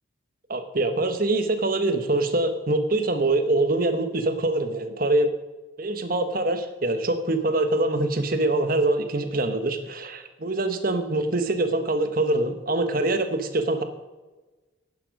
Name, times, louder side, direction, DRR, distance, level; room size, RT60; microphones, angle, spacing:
voice 1, 0.5-5.3 5.8-13.8, right 2 dB, 45° right, 8 dB, 1.1 m, -24 dB
11.0 x 9.9 x 5.3 m, 1.2 s
head